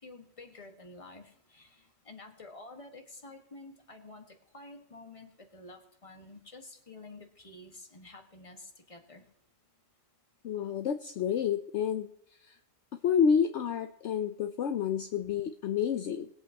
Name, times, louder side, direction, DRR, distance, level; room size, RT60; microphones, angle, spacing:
voice 1, 0.0-9.3, left 2 dB, 25° left, 4 dB, 1.6 m, -50 dB
voice 2, 10.4-12.1 12.4-12.6 13.0-16.3, left 7 dB, 65° left, 7 dB, 0.9 m, -29 dB
21.0 x 8.2 x 2.9 m, 0.77 s
omnidirectional pair, 1.4 m